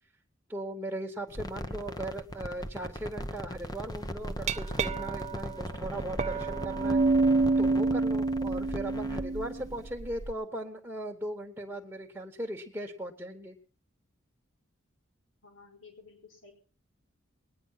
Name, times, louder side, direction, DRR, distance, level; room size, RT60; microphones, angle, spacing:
voice 1, 0.5-7.0 7.6-13.5, right 1 dB, 10° right, 1 dB, 1.4 m, -38 dB
sound 1, 1.3-9.9, equal, 20° left, 0.9 m, -39 dB
Glass, 4.2-10.3, right 3 dB, 35° right, 0.6 m, -28 dB
voice 2, 15.4-16.5, left 4 dB, 80° left, 1 dB, 4.1 m, -53 dB
20.5 x 9.8 x 5.7 m, 0.41 s
head